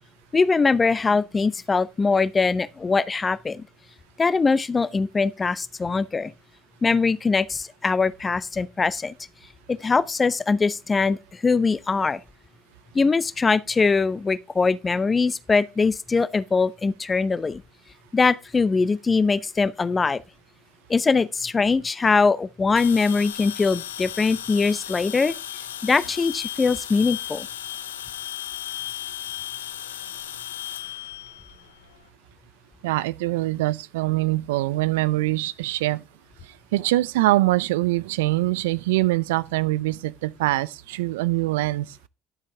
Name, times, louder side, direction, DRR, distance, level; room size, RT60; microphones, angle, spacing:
voice 1, 0.3-3.6 4.2-6.3 6.8-9.1 9.7-12.2 12.9-17.6 18.1-20.2 20.9-25.3 25.8-27.5, left 4 dB, 30° left, 0.7 m, -22 dB
sound 1, 22.8-32.0, left 11 dB, 85° left, 0.6 m, -35 dB
voice 2, 32.8-36.0 36.7-41.9, right 18 dB, 75° right, 0.4 m, -23 dB
11.0 x 7.4 x 3.4 m
hypercardioid pair, 55°, 0 cm